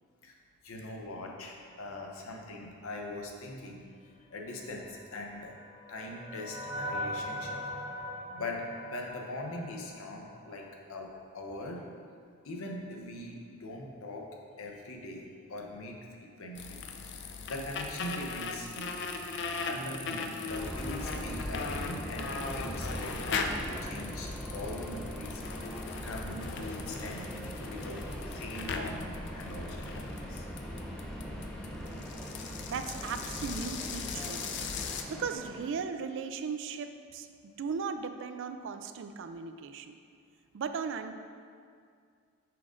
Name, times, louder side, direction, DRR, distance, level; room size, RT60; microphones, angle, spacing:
voice 1, 0.6-3.9 4.3-5.5 5.9-7.6 8.3-11.9 12.4-14.3 14.6-16.8 17.1-18.9 19.3-25.4 26.0-30.4, left 1 dB, 75° left, 0 dB, 0.8 m, -42 dB
sound 1, 5.0-10.4, left 1 dB, 80° right, 1.5 m, -40 dB
sound 2, 16.5-35.0, left 4 dB, 55° left, 0.4 m, -39 dB
Subway metro underground, 20.5-35.8, equal, 5° left, 0.6 m, -40 dB
voice 2, 32.7-34.5 35.1-39.9 40.5-41.1, right 5 dB, 60° right, 9 dB, 0.3 m, -37 dB
5.9 x 5.0 x 3.7 m, 2.2 s
head